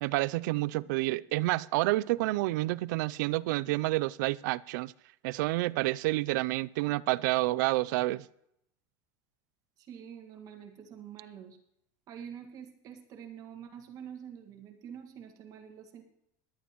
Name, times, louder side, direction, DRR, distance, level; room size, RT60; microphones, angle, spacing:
voice 1, 0.0-4.9 5.2-8.3, right 19 dB, 90° right, 0.4 m, -29 dB
voice 2, 9.8-11.6 12.1-16.0, right 8 dB, 40° right, 1.8 m, -46 dB
18.5 x 11.5 x 3.0 m
cardioid pair, 160°, 10 cm